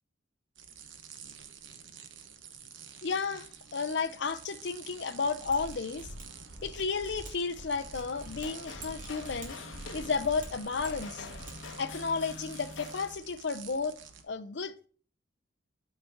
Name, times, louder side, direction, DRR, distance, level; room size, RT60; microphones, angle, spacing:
sound 1, 0.6-14.2, right 6 dB, 75° right, 1.0 m, -49 dB
voice 1, 3.0-6.1 6.6-9.6 9.9-11.3 11.8-14.0 14.2-14.9, left 4 dB, 65° left, 0.6 m, -33 dB
Mechanisms, 5.4-11.5 11.8-11.9, right 1 dB, 45° right, 2.0 m, -46 dB
sound 2, 7.9-13.2, left 4 dB, 80° left, 1.0 m, -46 dB
8.6 x 3.9 x 5.8 m
head